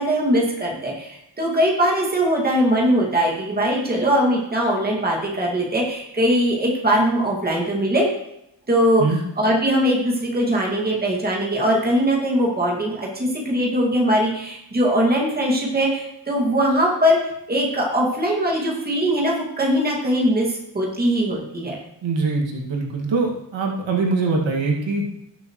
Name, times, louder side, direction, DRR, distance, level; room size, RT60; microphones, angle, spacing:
voice 1, 0.0-8.1 8.7-9.0 9.4-17.2 17.5-21.8, equal, 20° right, -3 dB, 2.3 m, -21 dB
voice 2, 22.0-25.0, right 3 dB, 85° right, -1 dB, 2.2 m, -23 dB
18.5 x 7.0 x 3.2 m, 0.81 s
wide cardioid pair, 175°, 44 cm